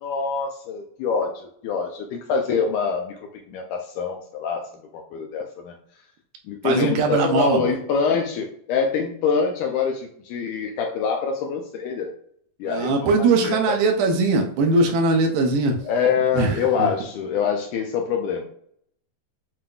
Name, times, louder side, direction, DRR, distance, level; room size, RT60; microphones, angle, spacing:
voice 1, 0.0-3.2 3.5-4.6 4.9-5.8 6.5-12.1 12.6-13.8 15.9-18.4, left 6 dB, 80° left, 3 dB, 1.8 m, -25 dB
voice 2, 6.6-7.8 12.6-15.8 16.3-16.9, right 3 dB, 80° right, 2 dB, 2.2 m, -20 dB
7.4 x 2.5 x 2.3 m, 0.65 s
omnidirectional pair, 4.0 m